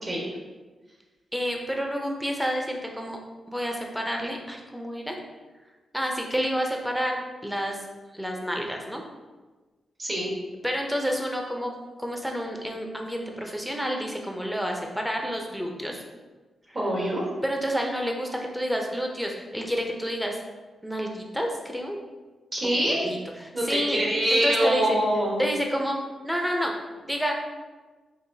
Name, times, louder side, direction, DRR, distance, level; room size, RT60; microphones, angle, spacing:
voice 1, 1.3-3.2 3.5-5.2 5.9-7.8 8.1-9.0 10.6-16.0 16.7-16.8 17.4-20.4 20.8-22.0 22.6-24.0 24.3-24.9 25.4-26.0 26.2-26.7 27.0-27.4, equal, ahead, 1 dB, 0.6 m, -29 dB
voice 2, 10.0-10.3 16.7-17.2 22.5-23.1 23.5-25.4, right 1 dB, 40° right, -3 dB, 1.4 m, -24 dB
4.7 x 2.9 x 2.7 m, 1.3 s
cardioid pair, 85°, 0 cm